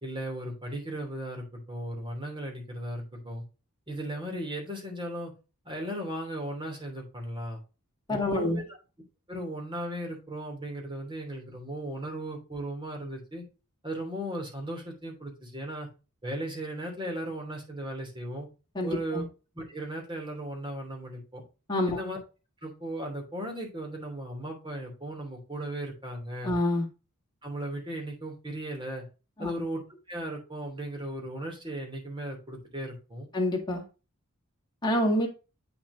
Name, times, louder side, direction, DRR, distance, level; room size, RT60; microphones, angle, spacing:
voice 1, 0.0-3.4 3.9-5.3 5.6-7.6 8.1-8.7 9.3-13.4 13.8-15.9 16.2-18.5 18.8-19.2 19.5-21.4 21.9-22.2 22.6-26.5 27.4-29.0 29.4-29.8 30.1-33.3, right 1 dB, 25° right, 1 dB, 3.1 m, -36 dB
voice 2, 8.1-8.6 18.7-19.2 21.7-22.0 26.4-26.9 29.4-29.5 33.3-33.9 34.8-35.3, left 1 dB, 20° left, 0 dB, 2.2 m, -27 dB
8.8 x 6.0 x 2.8 m, 0.31 s
head